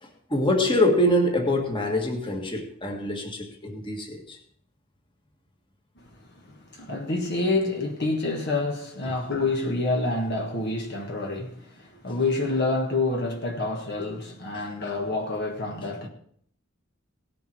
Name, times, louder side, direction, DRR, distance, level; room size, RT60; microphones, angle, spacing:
voice 1, 0.0-4.4 14.5-14.6, left 1 dB, 25° left, 1.8 m, -25 dB
voice 2, 6.7-16.1, left 2 dB, 50° left, 1.6 m, -27 dB
18.0 x 7.1 x 4.6 m
head